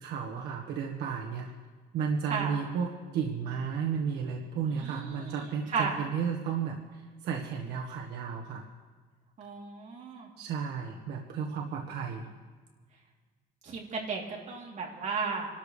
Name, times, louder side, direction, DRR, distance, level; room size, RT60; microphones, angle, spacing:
voice 1, 0.0-1.5 1.9-8.6 10.4-12.3, right 6 dB, 80° right, 1 dB, 1.6 m, -33 dB
voice 2, 4.7-6.0 9.4-10.3 13.6-15.5, right 5 dB, 45° right, -1 dB, 3.3 m, -34 dB
28.0 x 13.0 x 3.3 m, 1.4 s
cardioid pair, 125°, 17 cm